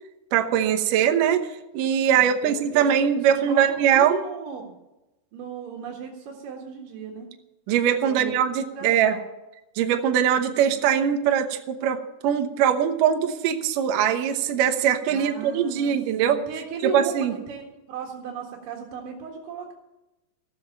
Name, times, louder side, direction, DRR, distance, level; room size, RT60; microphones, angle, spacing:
voice 1, 0.3-1.5 1.7-4.2 7.7-9.2 9.8-16.4 16.8-17.3, right 9 dB, 80° right, 4 dB, 1.9 m, -22 dB
voice 2, 2.1-2.9 3.3-4.8 5.3-7.3 8.0-8.3 8.7-9.3 15.1-17.1 17.5-17.6 17.9-19.7, right 5 dB, 60° right, -1 dB, 2.9 m, -35 dB
15.0 x 7.7 x 8.7 m, 0.99 s
omnidirectional pair, 5.3 m